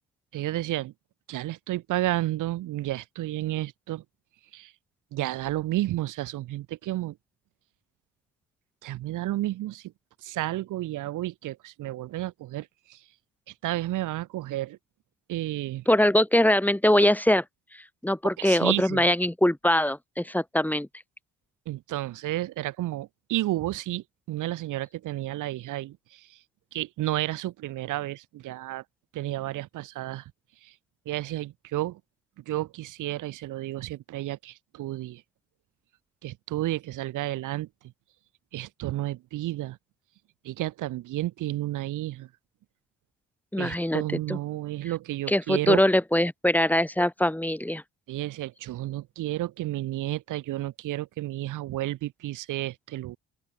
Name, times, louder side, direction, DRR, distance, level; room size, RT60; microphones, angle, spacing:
voice 1, 0.3-0.9 1.3-4.0 4.5-4.7 5.1-7.2 8.8-9.9 10.2-13.0 13.6-14.8 15.3-15.8 18.4-19.0 21.7-26.4 26.7-28.8 29.1-30.3 30.6-30.7 31.0-32.0 32.4-35.2 36.2-37.7 38.5-39.8 40.4-42.3 43.6-45.8 48.1-53.2, right 15 dB, 90° right, 4.9 m, -31 dB
voice 2, 15.9-17.4 18.0-20.9 43.5-44.0 44.3-44.4 45.3-47.8, left 1 dB, 5° left, 6.6 m, -22 dB
open air
cardioid pair, 90°, 30 cm